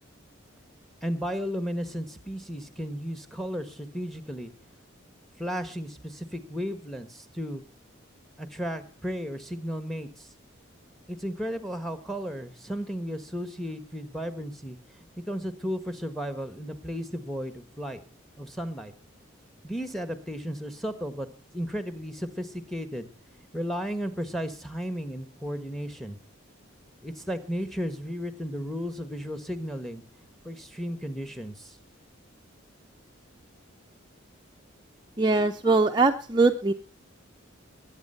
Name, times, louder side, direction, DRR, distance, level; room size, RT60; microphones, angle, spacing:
voice 1, 1.0-4.5 5.4-7.6 8.4-10.3 11.1-14.8 15.3-18.0 18.4-18.9 19.6-21.3 21.5-23.1 23.5-26.2 27.0-30.0 30.4-31.8, equal, ahead, 10 dB, 1.3 m, -34 dB
voice 2, 35.2-36.7, right 3 dB, 20° right, 4 dB, 0.6 m, -22 dB
20.0 x 8.9 x 5.6 m, 0.40 s
head